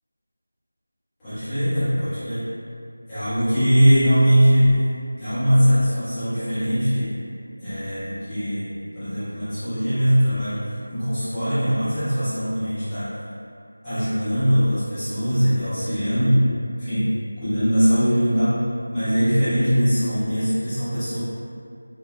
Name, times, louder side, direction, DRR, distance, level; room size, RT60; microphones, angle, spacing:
voice 1, 1.2-2.5 3.1-4.8 5.1-7.1 7.6-10.6 10.9-13.1 13.8-16.4 16.8-18.6 18.9-21.2, equal, 5° left, -22 dB, 1.3 m, -21 dB
4.2 x 2.7 x 2.3 m, 2.4 s
figure-of-eight pair, 175°, 0 cm